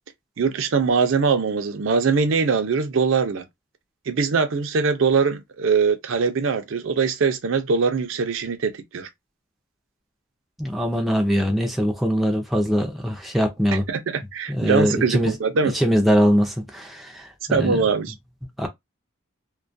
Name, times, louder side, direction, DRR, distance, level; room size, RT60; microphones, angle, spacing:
voice 1, 0.4-3.5 4.1-9.1 13.9-15.7 17.5-18.1, right 5 dB, 65° right, 0.5 m, -22 dB
voice 2, 10.6-13.8 14.5-15.3 15.7-17.3 17.5-17.7 18.6-18.7, equal, ahead, 0.4 m, -21 dB
2.3 x 2.1 x 2.5 m
head